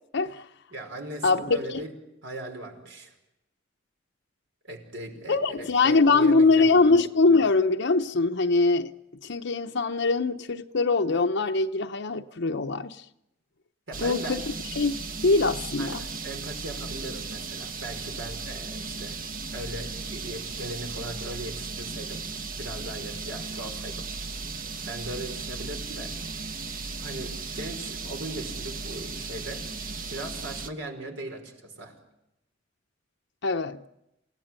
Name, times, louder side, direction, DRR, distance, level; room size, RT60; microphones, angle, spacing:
voice 1, 0.1-0.4 1.2-1.8 5.3-8.9 9.2-13.0 14.0-14.4 14.8-16.0 33.4-33.8, left 3 dB, 65° left, 0.8 m, -23 dB
voice 2, 0.7-1.9 2.2-3.1 4.6-6.9 13.9-14.4 15.8-19.2 19.5-22.2 22.6-24.1 24.9-26.1 27.0-29.7 30.1-31.9, right 1 dB, 70° right, 5.3 m, -38 dB
sound 1, 13.9-30.7, right 4 dB, 45° right, 1.3 m, -36 dB
28.5 x 17.0 x 9.0 m
head